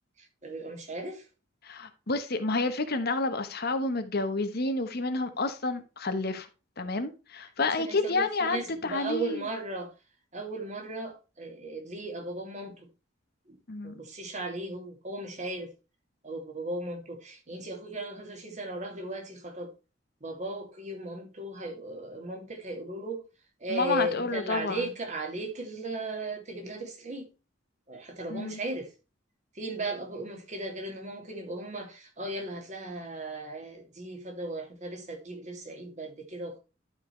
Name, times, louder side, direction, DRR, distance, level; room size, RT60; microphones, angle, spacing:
voice 1, 0.2-1.3 7.6-9.9 10.3-12.9 13.5-13.6 13.8-15.7 16.2-19.7 20.2-23.2 23.6-27.3 27.9-28.9 29.5-36.6, right 2 dB, 40° right, 2.4 m, -36 dB
voice 2, 1.6-6.5 6.8-8.6 8.8-9.5 13.7-14.0 23.7-24.8 28.3-28.6, left 3 dB, 55° left, 1.1 m, -29 dB
12.0 x 5.1 x 3.2 m
head